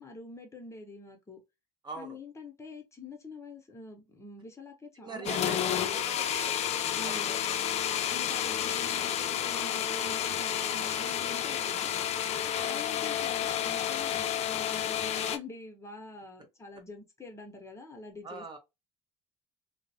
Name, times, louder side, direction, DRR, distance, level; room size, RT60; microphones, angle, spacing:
voice 1, 0.0-1.4 2.0-6.2 6.9-7.3 8.1-12.0 12.7-18.6, left 2 dB, 20° left, 0.8 m, -46 dB
voice 2, 1.8-2.2 5.0-6.7 7.0-7.4 12.4-12.8 18.2-18.6, right 4 dB, 35° right, 0.5 m, -43 dB
sound 1, 5.3-15.4, left 10 dB, 50° left, 0.4 m, -30 dB
2.4 x 2.0 x 2.7 m
supercardioid pair, 90°, 14 cm